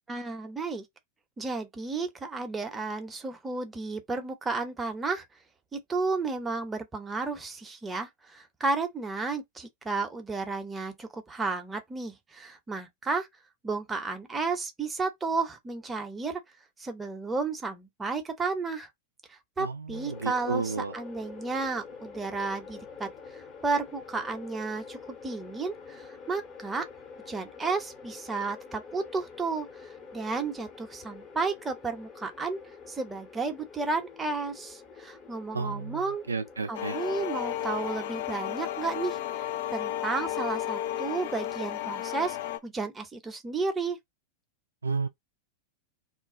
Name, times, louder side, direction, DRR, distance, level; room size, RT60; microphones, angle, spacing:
voice 1, 0.1-0.8 1.4-5.2 5.7-13.3 13.6-16.4 16.8-18.9 19.3-25.0 25.2-26.9 27.3-32.6 32.9-36.2 36.7-39.2 39.7-42.4 42.6-44.0, right 4 dB, 15° right, 0.7 m, -32 dB
voice 2, 19.6-20.9 35.5-37.0 44.8-45.1, right 4 dB, 85° right, 0.3 m, -32 dB
sound 1, 19.9-39.5, left 5 dB, 30° left, 0.8 m, -47 dB
sound 2, 36.7-42.6, left 12 dB, 60° left, 0.4 m, -33 dB
2.5 x 2.2 x 3.7 m
figure-of-eight pair, 90°, 0 cm